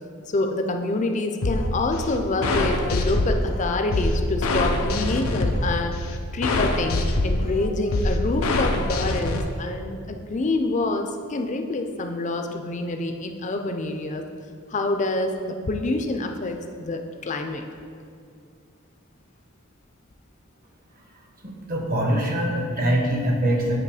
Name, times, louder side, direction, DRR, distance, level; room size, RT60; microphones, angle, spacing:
voice 1, 0.3-5.9 6.3-14.2 14.7-17.7, left 2 dB, 35° left, 5 dB, 0.5 m, -27 dB
sound 1, 1.4-9.4, left 2 dB, 90° left, 0.6 m, -24 dB
voice 2, 21.4-23.8, right 1 dB, 45° right, 1 dB, 1.1 m, -23 dB
9.1 x 3.1 x 4.9 m, 2.3 s
head